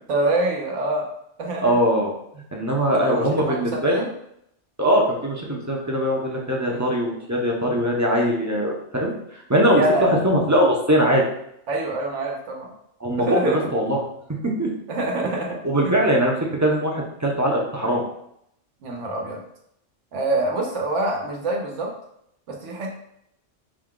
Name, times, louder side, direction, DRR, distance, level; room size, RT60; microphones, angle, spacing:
voice 1, 0.1-1.1 1.4-1.8 2.8-4.1 6.7-6.8 9.7-10.1 11.7-12.7 13.2-13.6 14.9-15.6 18.8-19.4 20.1-21.9 22.5-22.9, right 2 dB, 85° right, 1 dB, 1.2 m, -25 dB
voice 2, 1.6-2.1 2.5-4.0 4.8-9.1 9.5-11.2 13.0-14.0 14.6-14.7 15.6-16.3 16.6-18.0, equal, 20° right, -2 dB, 0.5 m, -21 dB
4.8 x 2.3 x 3.7 m, 0.75 s
omnidirectional pair, 1.2 m